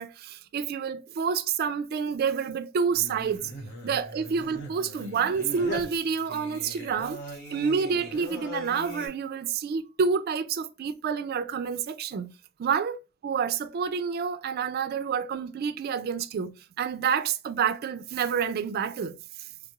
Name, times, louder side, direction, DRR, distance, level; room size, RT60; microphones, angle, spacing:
voice 1, 0.0-3.5 3.8-7.2 7.5-12.3 12.6-13.0 13.2-19.5, right 6 dB, 50° right, 0.3 m, -28 dB
Singing, 2.9-9.1, left 1 dB, 60° left, 1.1 m, -40 dB
3.5 x 2.3 x 2.9 m
head